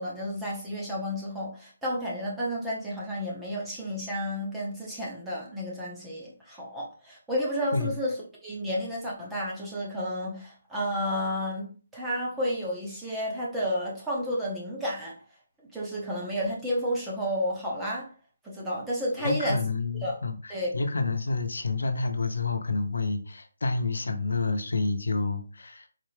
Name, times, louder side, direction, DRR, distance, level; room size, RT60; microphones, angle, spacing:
voice 1, 0.0-8.1 8.4-15.1 15.7-18.1 18.4-19.6 20.0-20.2 20.5-20.7, equal, 5° right, -5 dB, 0.7 m, -31 dB
voice 2, 19.2-25.9, left 3 dB, 85° left, 6 dB, 0.8 m, -29 dB
4.1 x 3.3 x 3.3 m, 0.39 s
hypercardioid pair, 175°, 0 cm